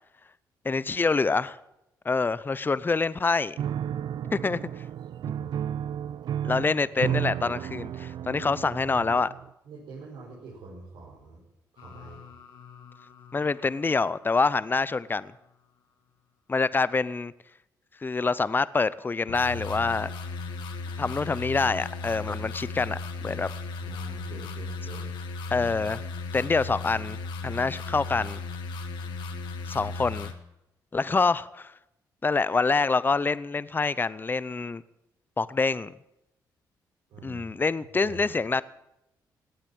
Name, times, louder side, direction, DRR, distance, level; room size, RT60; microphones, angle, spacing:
voice 1, 0.6-1.6 2.0-3.6 4.3-4.6 6.4-9.3 13.3-15.3 16.5-17.3 18.0-20.1 21.0-23.5 25.5-26.0 26.3-27.2 27.4-28.4 29.7-30.3 30.9-31.7 32.2-34.8 35.4-35.9 37.2-38.6, left 4 dB, 25° left, 0.6 m, -26 dB
Piano, 3.6-9.5, right 10 dB, 65° right, 0.5 m, -33 dB
voice 2, 9.6-11.4 11.7-12.2 23.8-25.1 37.1-37.4 38.0-38.2, right 3 dB, 85° right, 4.9 m, -44 dB
sound 1, 11.8-14.6 19.3-30.3, left 3 dB, 85° left, 1.6 m, -37 dB
18.0 x 8.7 x 8.8 m
cardioid pair, 70°, 8 cm